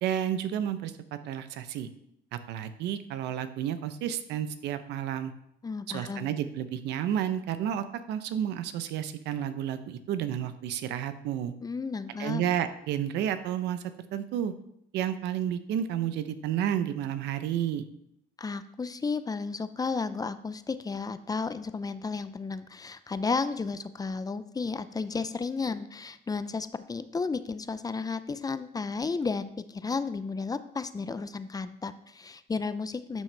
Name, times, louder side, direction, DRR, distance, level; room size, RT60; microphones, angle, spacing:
voice 1, 0.0-1.9 2.3-5.3 5.9-11.5 12.2-14.5 14.9-17.8, right 10 dB, 90° right, 11 dB, 0.7 m, -31 dB
voice 2, 5.6-6.3 11.6-12.4 18.4-33.2, left 4 dB, 20° left, 12 dB, 0.5 m, -33 dB
12.0 x 6.1 x 3.3 m, 0.75 s
cardioid pair, 105°, 17 cm